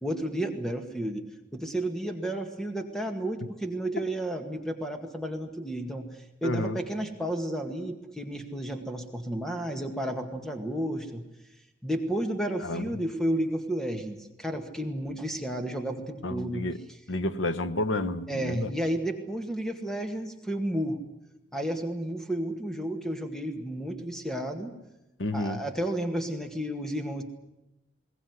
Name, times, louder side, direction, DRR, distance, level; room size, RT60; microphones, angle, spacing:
voice 1, 0.0-1.2 1.5-6.1 6.4-11.2 11.8-16.6 18.3-21.0 21.5-24.7 25.3-27.2, right 1 dB, 5° left, 2.0 m, -32 dB
voice 2, 6.4-6.8 12.6-12.9 16.2-16.8 17.1-18.7 25.2-25.6, left 2 dB, 90° left, 1.1 m, -30 dB
21.5 x 18.0 x 9.6 m
head